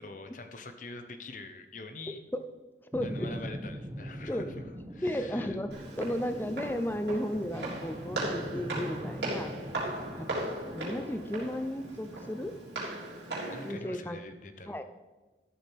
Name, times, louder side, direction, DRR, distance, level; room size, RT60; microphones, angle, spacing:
voice 1, 0.0-2.2 3.0-4.7 4.9-5.6 13.5-14.8, left 2 dB, 45° left, 7 dB, 0.9 m, -44 dB
voice 2, 2.9-3.3 4.3-4.4 5.0-9.5 10.2-10.3 10.7-12.5 13.6-14.2 14.7-14.8, equal, 10° left, 9 dB, 0.6 m, -34 dB
sound 1, 2.9-12.7, equal, 20° right, 0.9 m, -43 dB
Walk footsteps, 5.7-13.7, right 1 dB, 80° right, 3.6 m, -38 dB
13.5 x 7.9 x 3.6 m, 1.2 s
head